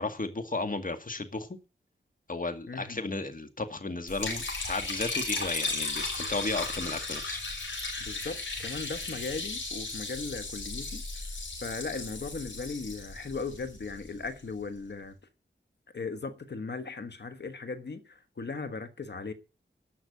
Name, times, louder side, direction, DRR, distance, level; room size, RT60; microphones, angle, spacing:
voice 1, 0.0-1.5 2.3-4.4 4.7-7.4, left 3 dB, 45° left, 2.1 m, -34 dB
voice 2, 2.7-3.0 8.0-11.0 11.6-15.1 15.9-19.3, left 4 dB, 60° left, 1.3 m, -37 dB
Liquid, 4.1-14.3, left 3 dB, 85° left, 5.7 m, -36 dB
12.0 x 6.0 x 9.3 m
wide cardioid pair, 65°, 20 cm